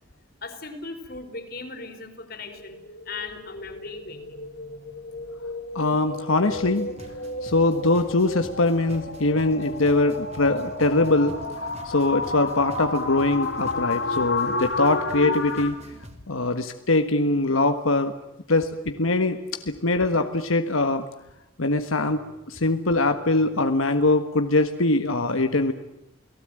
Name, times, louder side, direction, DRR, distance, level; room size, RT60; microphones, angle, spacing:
voice 1, 0.4-5.4, left 3 dB, 50° left, 7 dB, 4.1 m, -39 dB
sound 1, 2.4-15.7, left 2 dB, 65° left, 4.0 m, -32 dB
voice 2, 5.7-6.9 7.4-11.3 11.8-15.7 16.3-18.1 18.5-21.0 21.6-25.7, left 2 dB, 85° left, 7 dB, 1.5 m, -22 dB
sound 2, 6.5-16.2, equal, 30° right, 3.1 m, -46 dB
29.5 x 18.5 x 9.0 m, 0.90 s
head